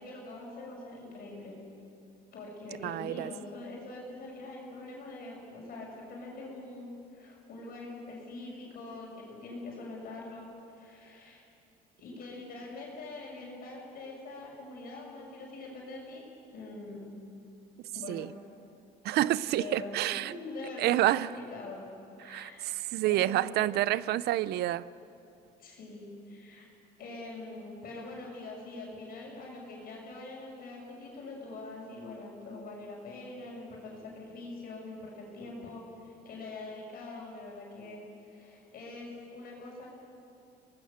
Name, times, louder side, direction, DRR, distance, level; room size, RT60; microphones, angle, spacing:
voice 1, 0.0-1.6 2.3-11.4 12.0-16.2 16.5-17.2 17.9-18.3 19.5-21.9 22.2-22.7 23.0-23.4 25.6-26.7 27.0-39.9, left 2 dB, 60° left, 6.1 m, -44 dB
voice 2, 2.8-3.3 18.1-18.3 19.0-20.3 20.8-21.3 22.3-24.8, right 14 dB, 75° right, 0.6 m, -28 dB
24.5 x 19.5 x 6.7 m
cardioid pair, 110°, 17 cm